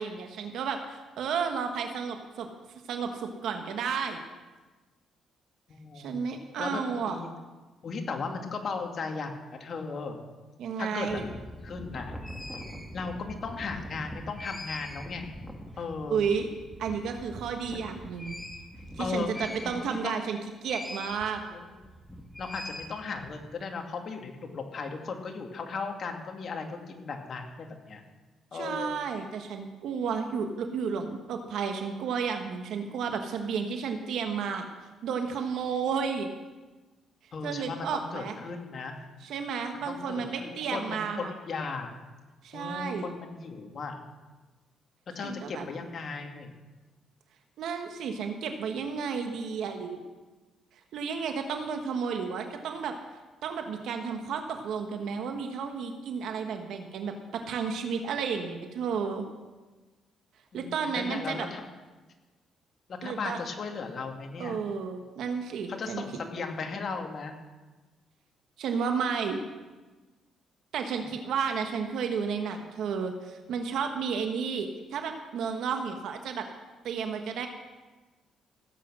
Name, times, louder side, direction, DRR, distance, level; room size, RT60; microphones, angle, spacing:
voice 1, 0.0-2.5 2.9-4.2 5.9-7.2 10.6-11.3 16.1-16.5 16.8-18.4 19.0-21.4 28.5-34.6 35.0-36.3 37.4-38.4 39.2-41.3 42.4-43.1 45.2-45.6 47.6-50.0 50.9-52.9 53.4-59.3 60.5-61.5 63.0-63.4 64.4-66.0 68.6-69.4 70.7-76.5 76.8-77.5, right 6 dB, 75° right, 5 dB, 1.4 m, -32 dB
voice 2, 5.7-6.2 6.6-7.3 7.8-10.2 10.8-12.1 12.9-15.3 15.8-16.2 19.0-20.3 21.5-21.6 22.4-28.0 28.5-29.0 37.3-38.9 39.9-41.9 42.5-44.0 45.2-46.5 60.5-61.6 62.9-64.6 65.7-67.3, left 4 dB, 50° left, 3 dB, 2.1 m, -36 dB
sound 1, 11.1-20.1 20.6-21.3 21.6-23.4, equal, 5° left, 2.2 m, -42 dB
16.5 x 8.6 x 6.2 m, 1.2 s
cardioid pair, 90°, 0 cm